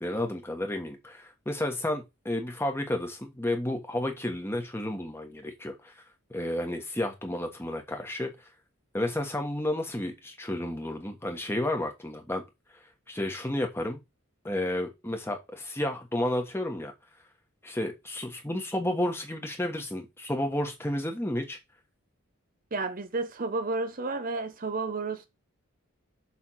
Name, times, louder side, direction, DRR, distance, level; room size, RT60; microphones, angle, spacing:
voice 1, 0.0-6.0 6.3-8.3 8.9-12.4 13.1-14.0 14.4-16.9 17.6-21.6, left 1 dB, 10° left, 1.4 m, -31 dB
voice 2, 22.7-25.3, right 3 dB, 40° right, 0.7 m, -31 dB
7.2 x 3.5 x 6.4 m
head